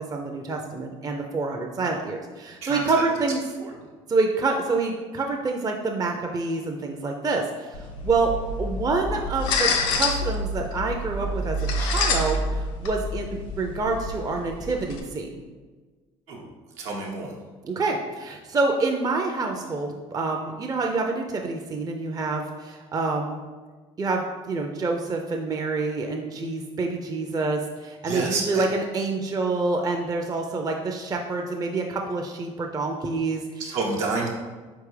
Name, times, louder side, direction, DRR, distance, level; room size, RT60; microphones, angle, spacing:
voice 1, 0.0-3.4 4.1-7.8 8.0-8.3 8.6-15.3 17.6-23.4 24.0-33.4, right 3 dB, 25° right, 2 dB, 0.5 m, -27 dB
voice 2, 2.6-3.0 3.6-3.7 16.3-16.5 16.8-17.3 28.0-28.6 33.6-34.3, right 3 dB, 80° right, -2 dB, 1.0 m, -29 dB
sound 1, 7.7-15.0, left 2 dB, 75° left, 0.5 m, -28 dB
4.5 x 3.4 x 3.2 m, 1.4 s
hypercardioid pair, 60°, 16 cm